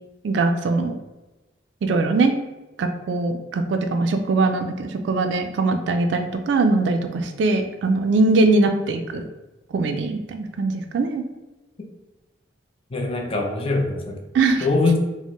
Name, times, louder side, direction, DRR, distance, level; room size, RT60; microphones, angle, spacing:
voice 1, 0.2-1.0 1.8-2.3 2.8-9.2 9.7-11.3 14.3-14.7, right 3 dB, 75° right, 6 dB, 0.3 m, -21 dB
voice 2, 12.9-14.2 14.6-15.0, left 3 dB, 30° left, 1 dB, 0.5 m, -22 dB
4.1 x 2.0 x 3.0 m, 1.1 s
head